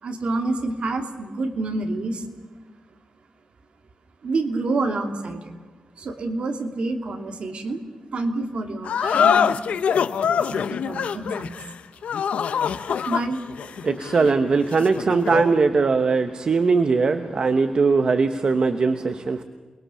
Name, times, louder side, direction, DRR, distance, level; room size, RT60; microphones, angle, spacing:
voice 1, 0.0-2.2 4.2-5.5 6.0-7.8 8.1-9.6 10.5-11.6 13.1-13.4, right 2 dB, 60° right, 5 dB, 2.7 m, -28 dB
sound 1, 8.8-15.6, left 7 dB, 85° left, 0.9 m, -24 dB
voice 2, 13.8-19.4, right 4 dB, 45° right, 8 dB, 1.1 m, -20 dB
29.0 x 21.5 x 7.2 m, 1.5 s
wide cardioid pair, 145°, 2 cm